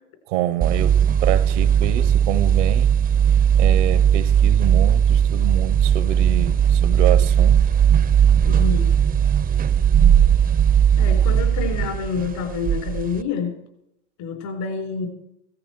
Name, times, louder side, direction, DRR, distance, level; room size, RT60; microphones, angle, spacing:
voice 1, 0.3-3.0 3.5-7.6, right 13 dB, 80° right, 0.8 m, -26 dB
sound 1, 0.6-13.2, right 8 dB, 25° right, 0.5 m, -17 dB
voice 2, 8.4-8.9 11.0-13.6 14.2-15.1, left 5 dB, 65° left, 4.5 m, -28 dB
16.5 x 13.5 x 4.6 m
hypercardioid pair, 90°, 36 cm